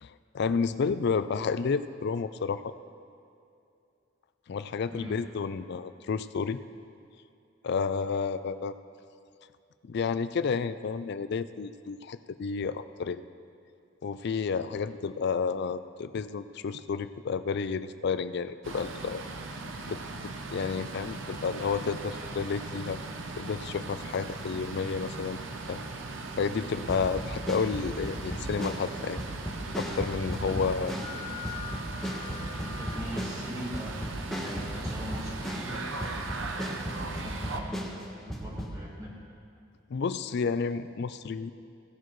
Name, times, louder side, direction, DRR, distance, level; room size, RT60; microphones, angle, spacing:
voice 1, 0.0-2.7 4.5-6.6 7.6-8.7 9.8-13.2 14.0-19.2 19.9-23.0 23.4-25.4 25.7-25.8 26.4-29.2 29.8-30.9 39.9-41.5, left 5 dB, 60° left, 13 dB, 0.4 m, -31 dB
voice 2, 4.9-5.2 30.5-31.3 32.5-34.0 34.4-35.8 36.4-37.9 38.3-39.2, equal, 20° right, -4 dB, 1.6 m, -42 dB
sound 1, 18.6-37.6, right 2 dB, 70° right, 0.8 m, -39 dB
sound 2, 26.9-35.8 36.0-38.7, equal, ahead, 1.1 m, -36 dB
16.5 x 11.0 x 3.1 m, 2.6 s
head